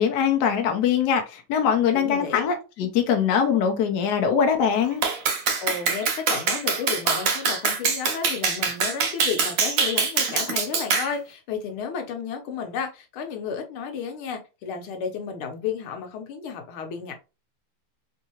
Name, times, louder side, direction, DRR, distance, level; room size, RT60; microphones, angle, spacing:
voice 1, 0.0-5.0, left 7 dB, 65° left, 1.1 m, -22 dB
voice 2, 1.9-2.4 2.8-2.9 5.6-17.1, left 6 dB, 90° left, 1.6 m, -32 dB
Clapping, 5.0-11.1, right 5 dB, 85° right, 0.7 m, -24 dB
3.7 x 2.7 x 2.8 m
omnidirectional pair, 2.3 m